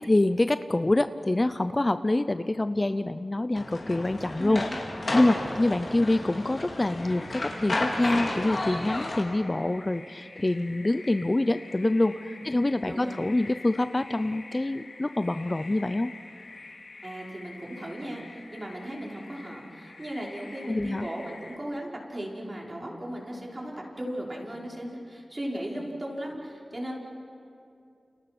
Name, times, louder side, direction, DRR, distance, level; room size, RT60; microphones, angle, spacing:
voice 1, 0.0-4.6 5.1-16.1 20.7-21.1, left 2 dB, 30° left, 11 dB, 0.6 m, -26 dB
sound 1, 3.5-9.2, left 2 dB, 50° left, 4.7 m, -32 dB
voice 2, 4.4-4.7 12.2-12.4 12.9-13.2 17.0-26.9, right 1 dB, 30° right, -2 dB, 5.4 m, -37 dB
sound 2, 6.9-21.6, left 3 dB, 75° left, 2.8 m, -47 dB
30.0 x 29.5 x 6.1 m, 2.6 s
wide cardioid pair, 70°, 0 cm